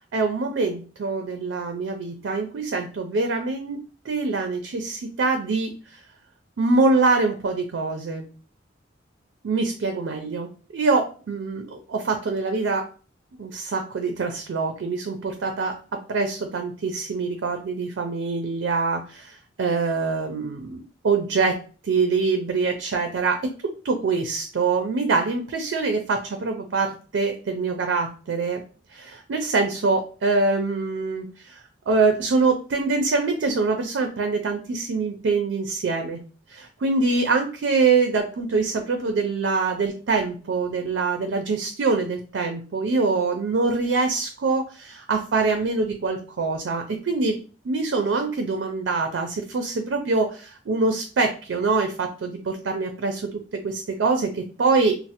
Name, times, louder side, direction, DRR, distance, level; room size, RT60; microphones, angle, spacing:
voice 1, 0.1-3.8 4.1-6.0 6.6-8.2 9.4-12.9 13.4-15.8 16.1-23.5 23.8-28.6 28.9-36.2 36.5-47.4 47.6-55.0, right 3 dB, 75° right, 5 dB, 0.4 m, -24 dB
3.1 x 2.0 x 2.8 m, 0.38 s
head